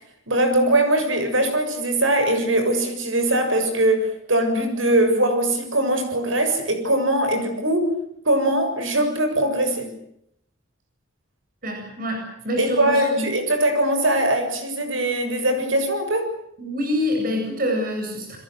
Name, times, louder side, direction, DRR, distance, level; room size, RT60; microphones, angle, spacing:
voice 1, 0.3-7.9 8.3-9.9 12.6-16.3, right 1 dB, 80° right, 7.1 m, -21 dB
voice 2, 11.6-13.3 16.6-18.4, left 1 dB, 45° right, 8.0 m, -26 dB
29.5 x 22.5 x 7.8 m
head